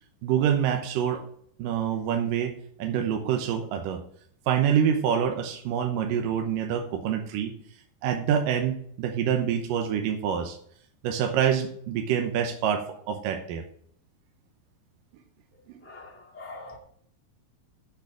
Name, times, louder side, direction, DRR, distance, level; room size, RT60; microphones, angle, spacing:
voice 1, 0.2-1.2 1.6-4.0 4.5-7.5 8.0-10.6 11.0-13.6 15.7-15.8, right 8 dB, 75° right, 2.5 m, -26 dB
voice 2, 15.8-16.8, left 2 dB, 5° left, 1.2 m, -43 dB
7.7 x 6.9 x 7.4 m
omnidirectional pair, 4.2 m